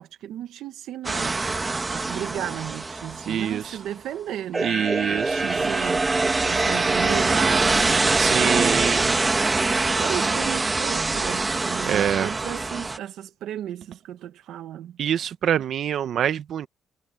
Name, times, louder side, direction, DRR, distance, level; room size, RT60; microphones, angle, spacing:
voice 1, 0.0-9.3 10.0-15.0, right 11 dB, 85° right, 1.0 m, -34 dB
sound 1, 1.0-3.7 4.5-13.0, right 3 dB, 25° right, 1.9 m, -24 dB
voice 2, 3.3-3.8 4.6-5.7 8.1-9.1 10.2-10.4 11.9-12.3 15.0-16.7, right 9 dB, 65° right, 1.2 m, -25 dB
cardioid pair, 90°, 0 cm